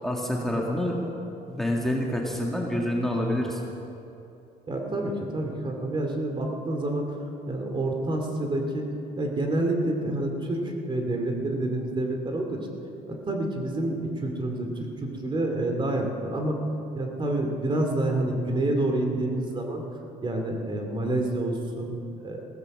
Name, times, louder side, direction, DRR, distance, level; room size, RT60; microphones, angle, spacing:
voice 1, 0.0-1.1 1.5-3.6, left 1 dB, ahead, -2 dB, 2.0 m, -27 dB
voice 2, 4.7-7.1 7.5-8.9 9.2-12.6 13.1-16.6 16.9-19.8 20.2-21.9 22.2-22.4, right 1 dB, 30° right, 3 dB, 2.4 m, -28 dB
16.0 x 14.5 x 6.1 m, 2.8 s
cardioid pair, 110°, 17 cm